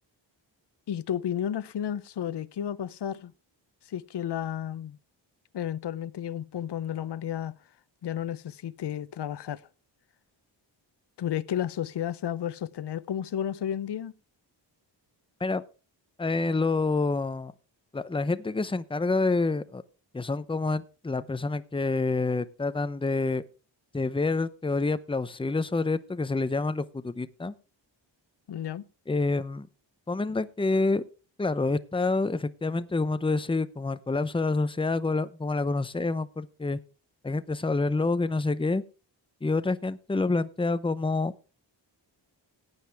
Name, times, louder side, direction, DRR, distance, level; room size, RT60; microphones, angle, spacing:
voice 1, 0.9-3.3 3.9-5.0 5.5-7.5 8.0-9.6 11.2-14.1 28.5-28.8, left 10 dB, 60° left, 0.7 m, -32 dB
voice 2, 16.2-17.5 17.9-19.8 20.1-23.4 23.9-27.5 29.1-29.7 30.1-31.0 31.4-36.8 37.2-38.8 39.4-41.3, left 3 dB, 10° left, 0.7 m, -27 dB
16.0 x 9.5 x 3.4 m
wide cardioid pair, 80°, 46 cm